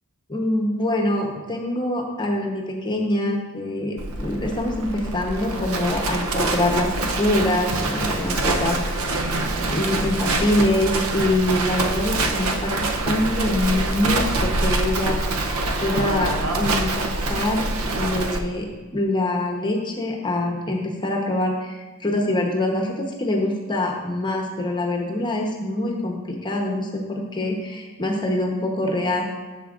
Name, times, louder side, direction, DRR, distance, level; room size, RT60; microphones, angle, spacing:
voice 1, 0.3-9.3 9.5-15.5 15.8-18.7 18.9-29.2, left 1 dB, 20° left, 0 dB, 0.9 m, -24 dB
Livestock farm animals working animals, 4.0-18.4, right 2 dB, 75° right, 0.7 m, -25 dB
11.0 x 6.9 x 2.5 m, 1.3 s
head